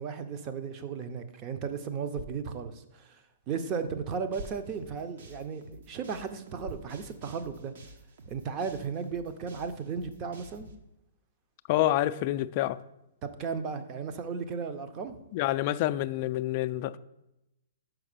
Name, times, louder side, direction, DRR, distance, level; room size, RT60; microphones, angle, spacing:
voice 1, 0.0-7.7 8.3-10.7 13.2-15.2, right 6 dB, 25° right, 0.7 m, -35 dB
sound 1, 2.0-8.0, equal, 85° right, 1.0 m, -50 dB
sound 2, 3.9-10.7, right 2 dB, 65° right, 1.1 m, -51 dB
voice 2, 11.7-12.8 15.3-17.0, left 14 dB, 40° left, 0.3 m, -27 dB
6.0 x 5.2 x 6.7 m
hypercardioid pair, 155°, 0 cm